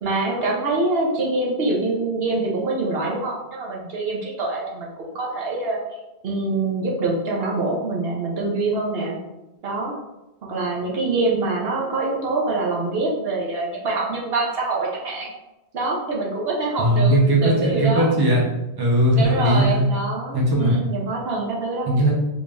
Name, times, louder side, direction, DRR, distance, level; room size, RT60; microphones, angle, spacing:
voice 1, 0.0-5.8 6.2-9.2 9.6-9.9 10.5-15.3 15.7-17.1 17.4-18.1 19.2-21.9, right 3 dB, 70° right, -3 dB, 1.0 m, -25 dB
voice 2, 16.8-18.4 18.8-19.8 20.3-20.8 21.8-22.1, right 1 dB, 25° right, -3 dB, 0.7 m, -18 dB
3.7 x 2.5 x 3.4 m, 0.98 s
omnidirectional pair, 1.1 m